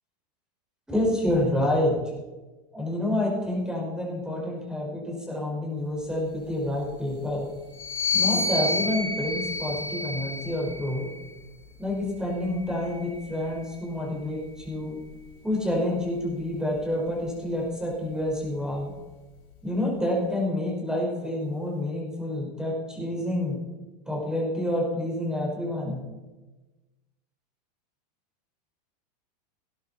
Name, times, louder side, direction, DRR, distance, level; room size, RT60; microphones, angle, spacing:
voice 1, 0.9-2.0 2.7-7.5 8.1-11.1 11.8-15.0 15.4-18.9 19.6-23.6 24.1-26.0, left 1 dB, 5° right, -2 dB, 5.4 m, -28 dB
sound 1, 7.7-11.3 12.2-13.8, left 3 dB, 25° left, 4.2 m, -30 dB
19.0 x 11.0 x 4.4 m, 1.2 s
supercardioid pair, 135°, 21 cm